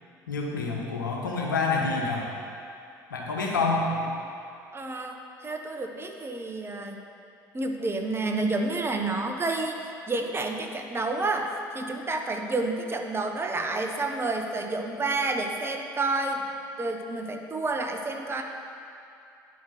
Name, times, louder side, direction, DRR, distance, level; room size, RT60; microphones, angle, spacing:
voice 1, 0.3-2.4 3.1-4.1, left 3 dB, 90° left, -1 dB, 1.0 m, -27 dB
voice 2, 4.7-7.0 7.5-16.4 16.8-18.4, right 2 dB, 25° right, 3 dB, 0.9 m, -29 dB
9.3 x 4.4 x 6.0 m, 2.6 s
hypercardioid pair, 60°, 10 cm